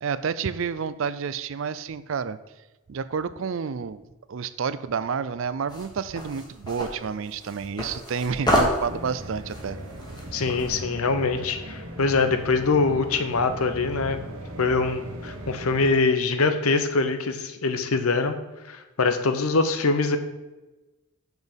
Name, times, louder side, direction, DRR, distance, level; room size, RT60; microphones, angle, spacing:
voice 1, 0.0-2.4 2.9-4.0 4.3-9.8 10.4-10.5, right 6 dB, 60° right, 15 dB, 0.4 m, -30 dB
sound 1, 5.7-10.8, equal, 20° left, 1.5 m, -29 dB
sound 2, 8.8-15.9, right 1 dB, 90° right, 1.3 m, -38 dB
voice 2, 10.3-14.2 14.6-18.3 18.7-20.2, left 4 dB, 85° left, 9 dB, 0.8 m, -23 dB
7.0 x 6.2 x 5.2 m, 1.1 s
head